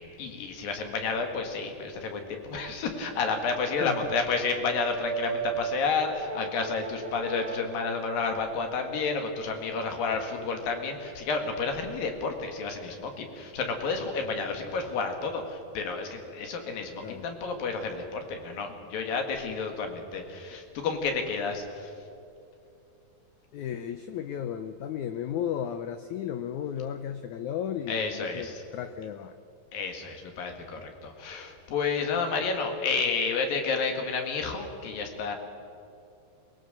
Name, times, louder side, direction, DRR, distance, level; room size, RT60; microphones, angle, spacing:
voice 1, 0.0-21.9 27.9-28.6 29.7-35.4, left 4 dB, 70° left, 4 dB, 3.6 m, -31 dB
Brass instrument, 2.3-7.7, right 7 dB, 30° right, 1.1 m, -37 dB
voice 2, 3.8-4.1 17.0-17.2 23.5-29.4, left 9 dB, 85° left, 10 dB, 1.7 m, -34 dB
22.5 x 20.0 x 6.7 m, 2.6 s
omnidirectional pair, 4.3 m